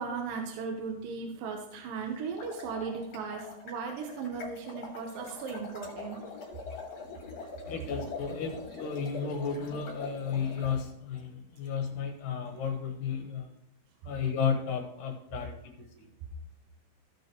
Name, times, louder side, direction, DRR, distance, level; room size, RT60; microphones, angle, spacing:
voice 1, 0.0-6.2, right 5 dB, 70° right, 2 dB, 2.5 m, -37 dB
sound 1, 2.2-10.7, left 4 dB, 50° left, 2.6 m, -43 dB
voice 2, 7.7-13.5 14.0-16.1, left 6 dB, 70° left, 3 dB, 2.5 m, -33 dB
15.0 x 6.2 x 3.0 m, 0.77 s
omnidirectional pair, 4.4 m